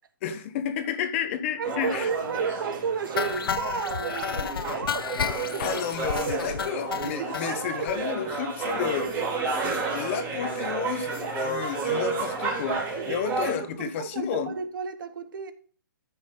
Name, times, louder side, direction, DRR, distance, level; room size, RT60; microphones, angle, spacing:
voice 1, 0.2-2.1 5.6-9.2 9.9-14.5, left 8 dB, 35° left, 1.0 m, -31 dB
sound 1, 1.6-13.5, right 3 dB, 20° right, 2.8 m, -31 dB
voice 2, 1.6-5.2 5.5-5.8 6.2-6.5 7.1-7.9 13.0-15.5, right 6 dB, 65° right, 1.4 m, -33 dB
sound 2, 3.2-7.5 7.9-8.0 8.3-8.4 8.6-8.8 9.1-9.2, left 7 dB, 85° left, 0.7 m, -31 dB
14.0 x 5.9 x 3.8 m
hypercardioid pair, 160°, 12 cm